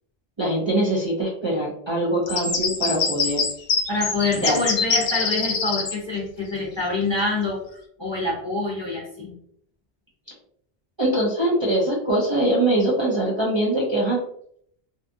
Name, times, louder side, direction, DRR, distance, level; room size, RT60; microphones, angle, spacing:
voice 1, 0.4-3.4 4.3-4.6 11.0-14.2, right 1 dB, 35° right, -5 dB, 0.5 m, -22 dB
sound 1, 2.3-5.9, left 5 dB, 70° left, 0.8 m, -24 dB
voice 2, 3.9-9.3, left 3 dB, 30° left, -5 dB, 0.6 m, -26 dB
2.6 x 2.3 x 2.6 m, 0.67 s
omnidirectional pair, 1.0 m